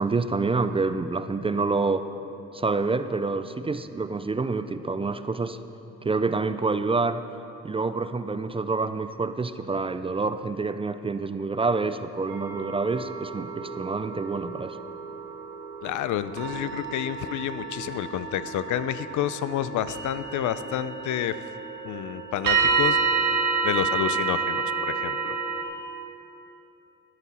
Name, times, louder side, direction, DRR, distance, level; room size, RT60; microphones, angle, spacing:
voice 1, 0.0-2.0 2.5-5.6 6.0-7.2 7.6-14.8, right 3 dB, 20° right, 11 dB, 0.4 m, -27 dB
sound 1, 12.3-25.6, right 5 dB, 85° right, 1.5 m, -29 dB
voice 2, 15.8-21.4 21.8-23.0 23.6-25.4, left 11 dB, 75° left, 14 dB, 0.5 m, -29 dB
12.0 x 10.5 x 4.2 m, 2.9 s
cardioid pair, 90°, 30 cm